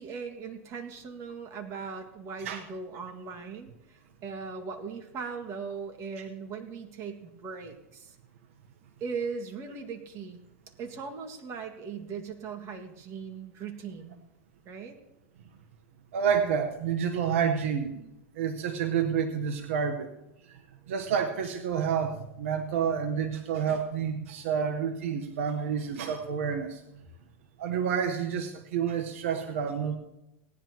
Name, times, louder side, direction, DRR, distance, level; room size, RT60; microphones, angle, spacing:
voice 1, 0.0-8.2 9.0-10.4 10.8-14.2 14.7-15.0, right 5 dB, 45° right, 4 dB, 2.0 m, -39 dB
voice 2, 16.1-18.0 18.3-20.1 20.5-20.6 20.9-26.8 27.6-30.0, right 7 dB, 80° right, 6 dB, 1.1 m, -29 dB
18.5 x 10.5 x 3.0 m, 0.88 s
hypercardioid pair, 110°, 7 cm